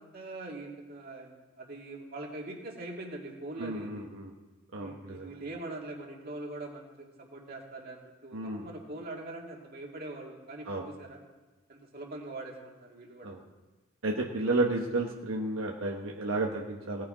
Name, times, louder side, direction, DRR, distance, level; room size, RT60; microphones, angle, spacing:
voice 1, 0.0-4.1 4.8-11.2 11.7-13.3, right 2 dB, 45° right, 0 dB, 2.1 m, -42 dB
voice 2, 3.6-4.3 4.7-5.3 8.3-8.7 10.7-10.9 13.2-13.4 14.0-17.0, right 2 dB, 80° right, 0 dB, 1.2 m, -32 dB
18.0 x 6.8 x 4.9 m, 1.2 s
head